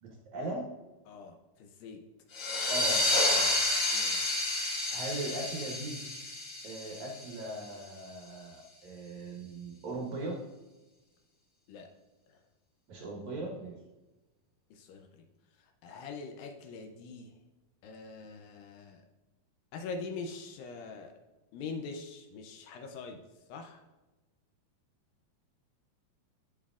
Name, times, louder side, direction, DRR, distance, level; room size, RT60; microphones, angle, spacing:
voice 1, 0.0-0.7 2.7-3.0 3.3-3.5 4.9-6.0 6.6-10.4 12.9-13.7, right 2 dB, 65° right, -1 dB, 2.1 m, -39 dB
voice 2, 1.6-2.0 3.9-4.6 11.7-11.9 14.7-15.1 15.8-17.3 17.8-19.0 19.7-21.1 21.5-23.2 23.5-23.8, left 4 dB, 80° left, 4 dB, 2.3 m, -43 dB
sound 1, 2.3-7.6, left 2 dB, 55° left, 3.6 m, -30 dB
8.3 x 7.7 x 2.4 m, 1.1 s
omnidirectional pair, 4.3 m